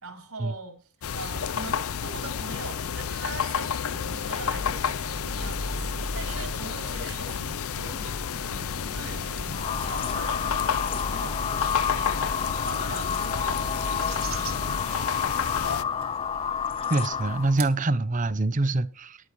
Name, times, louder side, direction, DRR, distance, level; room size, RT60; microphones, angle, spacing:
voice 1, 0.0-14.8, right 3 dB, 90° right, 4.0 m, -43 dB
sound 1, 1.0-15.8, left 7 dB, 80° left, 0.5 m, -31 dB
sound 2, 3.9-17.7, right 1 dB, 70° right, 1.8 m, -39 dB
sound 3, 9.5-17.6, left 7 dB, 25° left, 0.4 m, -30 dB
voice 2, 16.9-19.2, right 2 dB, 35° right, 0.7 m, -25 dB
15.0 x 11.0 x 3.1 m
head